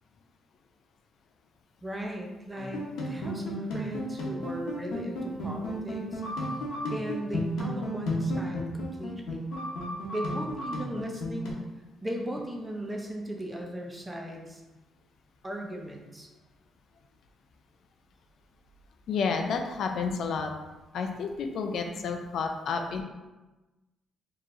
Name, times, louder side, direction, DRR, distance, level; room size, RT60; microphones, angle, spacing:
voice 1, 1.8-6.2 6.9-9.5 10.1-11.7 12.0-14.6 15.4-16.3 21.9-22.0, right 1 dB, 10° right, 1 dB, 0.5 m, -37 dB
sound 1, 2.6-11.5, equal, 75° left, 0.9 m, -33 dB
voice 2, 19.1-20.5 20.9-23.0, left 5 dB, 60° left, 4 dB, 0.4 m, -30 dB
4.7 x 2.9 x 2.5 m, 1.1 s
cardioid pair, 170°, 0 cm